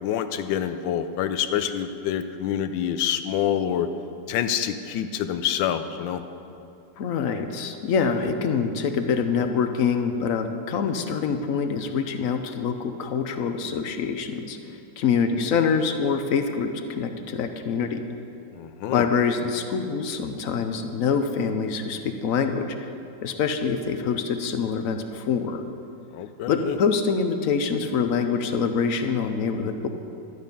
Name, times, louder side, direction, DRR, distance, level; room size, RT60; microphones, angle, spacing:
voice 1, 0.0-3.9 4.3-6.2 18.6-19.0 26.1-26.8, left 9 dB, 90° left, 10 dB, 1.3 m, -27 dB
voice 2, 7.0-18.0 18.9-22.8 23.2-25.6 26.5-29.9, left 6 dB, 65° left, 7 dB, 0.9 m, -25 dB
12.0 x 9.7 x 5.3 m, 2.7 s
omnidirectional pair, 2.0 m